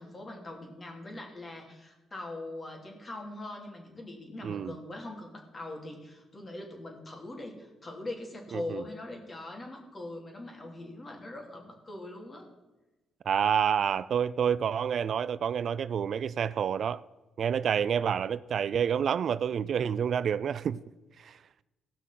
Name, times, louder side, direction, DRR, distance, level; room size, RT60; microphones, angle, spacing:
voice 1, 0.0-12.5, left 2 dB, 30° left, 2.9 m, -42 dB
voice 2, 4.4-4.7 8.5-8.8 13.3-17.0 17.4-20.8 21.2-21.4, right 8 dB, 60° right, 0.3 m, -28 dB
17.0 x 5.9 x 5.8 m
cardioid pair, 90°, 0 cm